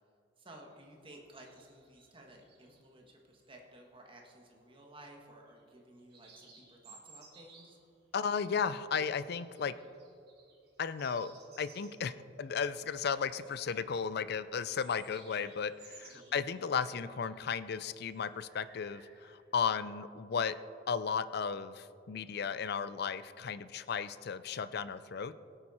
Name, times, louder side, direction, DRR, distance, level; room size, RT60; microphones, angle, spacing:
voice 1, 0.4-7.7 16.0-16.3, right 1 dB, 30° right, 1 dB, 1.6 m, -55 dB
sound 1, 0.7-2.9 3.3-3.9 4.1-4.7 5.5-5.7 6.0-7.9 8.5-17.7 18.0-19.4, right 4 dB, 60° right, 2.9 m, -60 dB
voice 2, 8.1-9.7 10.8-12.1 12.4-20.6 20.9-25.3, left 6 dB, 60° left, 15 dB, 0.5 m, -35 dB
18.0 x 8.8 x 4.3 m, 2.5 s
head